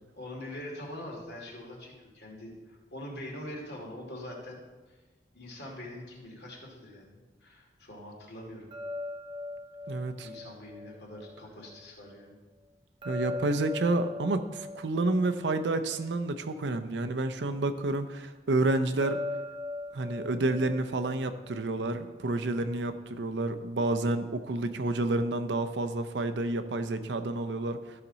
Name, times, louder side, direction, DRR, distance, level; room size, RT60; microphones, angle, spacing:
voice 1, 0.1-4.6 4.9-5.0 5.3-8.7 9.9-12.4, left 1 dB, 70° left, -2 dB, 2.4 m, -43 dB
sound 1, 8.7-11.8 13.0-16.5 19.0-22.1, left 2 dB, 30° right, 0.6 m, -40 dB
voice 2, 9.9-10.3 13.0-19.2 19.9-27.8, right 2 dB, 80° right, 8 dB, 0.6 m, -29 dB
13.0 x 5.9 x 4.0 m, 1.2 s
head